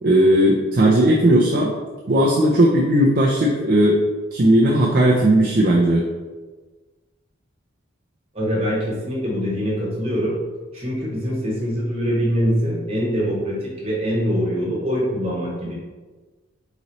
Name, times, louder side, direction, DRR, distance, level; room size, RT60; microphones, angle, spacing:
voice 1, 0.0-1.7 2.1-4.0 4.3-6.0, right 1 dB, 45° right, -3 dB, 0.4 m, -16 dB
voice 2, 8.3-10.3 10.7-15.7, equal, 30° right, -5 dB, 1.2 m, -23 dB
4.0 x 3.0 x 4.0 m, 1.3 s
head